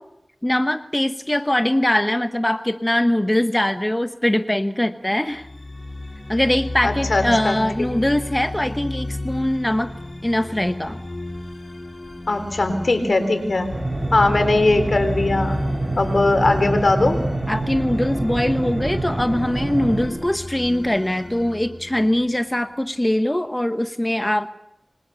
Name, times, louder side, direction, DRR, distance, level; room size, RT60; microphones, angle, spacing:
voice 1, 0.4-5.5 6.3-9.9 10.2-11.0 17.5-24.5, left 1 dB, 15° left, 9 dB, 1.1 m, -22 dB
sound 1, 5.3-22.4, left 2 dB, 40° left, 5.4 m, -33 dB
voice 2, 6.8-7.9 12.3-13.7 14.1-15.6 16.0-17.2, left 2 dB, 70° left, 9 dB, 3.8 m, -20 dB
sound 2, 13.7-20.1, right 2 dB, 35° right, 6.5 m, -26 dB
26.0 x 25.5 x 6.9 m, 0.85 s
wide cardioid pair, 55°, 0 cm